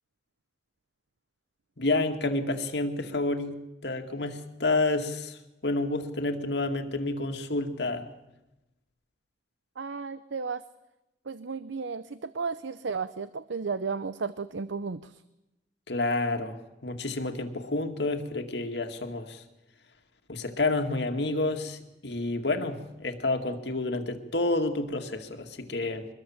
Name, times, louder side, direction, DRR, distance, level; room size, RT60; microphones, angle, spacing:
voice 1, 1.8-3.6 3.8-8.1 15.9-16.6 16.8-19.4 20.3-26.1, left 2 dB, 65° left, 6 dB, 2.2 m, -29 dB
voice 2, 9.8-10.6 11.3-15.2, right 5 dB, 80° right, 14 dB, 0.7 m, -34 dB
24.5 x 21.0 x 7.3 m, 0.95 s
head